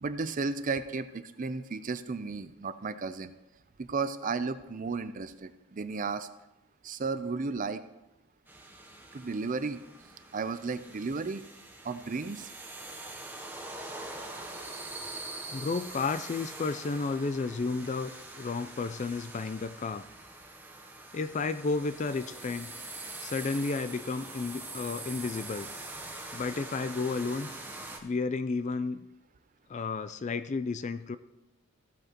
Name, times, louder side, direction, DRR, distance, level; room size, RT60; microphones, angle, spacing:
voice 1, 0.0-3.3 3.8-6.3 6.8-7.8 9.1-9.8 10.3-11.4 11.8-12.5, right 4 dB, 35° right, 12 dB, 0.5 m, -34 dB
sound 1, 8.5-28.0, right 2 dB, 10° right, 0.8 m, -44 dB
voice 2, 15.5-20.1 21.1-22.7 23.2-25.7 26.3-27.5 28.0-29.0 29.7-31.2, left 4 dB, 35° left, 12 dB, 0.3 m, -32 dB
15.0 x 8.0 x 2.9 m, 0.95 s
head